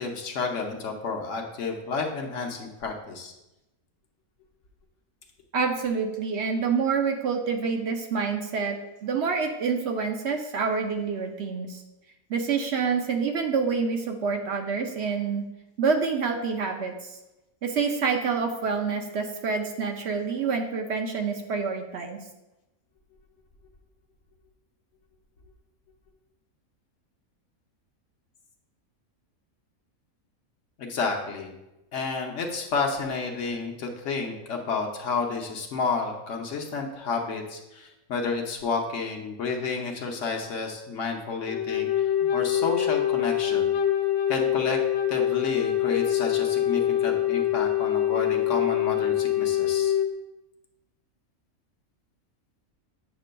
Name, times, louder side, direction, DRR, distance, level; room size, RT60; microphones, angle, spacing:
voice 1, 0.0-3.3 30.8-31.5 31.9-43.7 44.3-44.8 45.1-49.9, left 4 dB, 60° left, 2 dB, 1.1 m, -31 dB
voice 2, 5.5-11.8 12.3-15.4 15.8-17.2 17.6-22.2, right 5 dB, 60° right, 4 dB, 0.7 m, -27 dB
Wind instrument woodwind instrument, 41.5-50.1, left 11 dB, 85° left, 1.1 m, -25 dB
8.1 x 6.3 x 2.2 m, 0.97 s
omnidirectional pair, 1.5 m